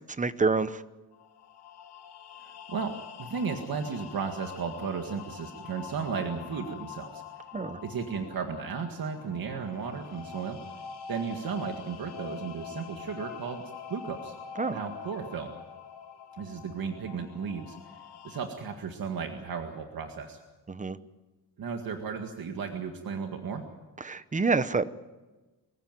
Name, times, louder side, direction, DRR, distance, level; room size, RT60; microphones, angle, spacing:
voice 1, 0.1-0.8 7.5-7.8 14.6-14.8 20.7-21.0 24.0-24.9, right 4 dB, 20° right, 14 dB, 0.8 m, -27 dB
sound 1, 1.1-18.4, left 8 dB, 80° left, 3.3 m, -45 dB
voice 2, 2.4-2.9 3.2-7.2 7.8-10.6 11.1-13.6 13.9-14.4 14.7-15.5 16.4-20.4 21.6-23.6, right 6 dB, 60° right, 4 dB, 2.0 m, -35 dB
24.5 x 15.5 x 9.2 m, 1.2 s
wide cardioid pair, 135°, 39 cm